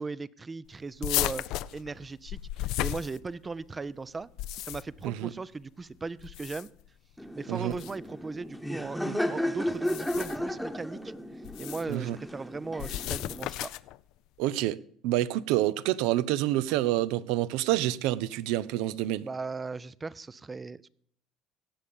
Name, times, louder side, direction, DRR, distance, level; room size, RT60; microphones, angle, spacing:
voice 1, 0.0-1.5 1.7-4.3 4.6-6.7 7.3-11.1 11.6-13.7 19.2-20.9, right 4 dB, 20° right, 0.5 m, -38 dB
sound 1, 1.0-3.6 4.2-5.1 6.2-6.9 7.7-8.0 9.7-10.5 11.4-11.9 12.8-14.0, left 15 dB, 70° left, 0.4 m, -34 dB
Laughter, 7.2-13.5, left 1 dB, ahead, 1.1 m, -34 dB
voice 2, 14.4-14.8 15.0-19.3, right 14 dB, 80° right, 0.5 m, -27 dB
17.5 x 7.1 x 5.2 m
supercardioid pair, 95°, 0 cm